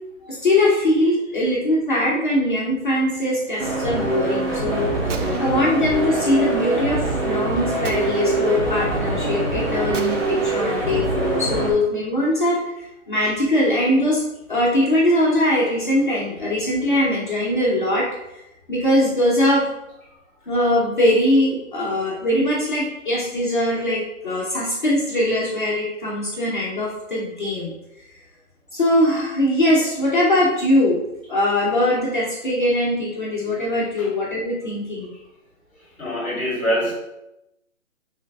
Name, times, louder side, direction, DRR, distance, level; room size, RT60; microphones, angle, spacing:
voice 1, 0.2-4.9 5.4-14.2 14.5-18.1 18.3-19.7 20.5-27.7 28.0-28.1 28.7-31.0 31.3-35.1, left 1 dB, 40° left, -5 dB, 0.6 m, -21 dB
sound 1, 3.6-11.7, right 2 dB, 45° right, 1.2 m, -24 dB
Gunshot gunfire, 5.1-6.2 7.8-8.7 9.9-11.7, right 6 dB, 60° right, 0.5 m, -38 dB
voice 2, 36.0-36.9, equal, 5° right, -15 dB, 1.1 m, -24 dB
3.7 x 3.3 x 3.2 m, 0.89 s
hypercardioid pair, 175°, 41 cm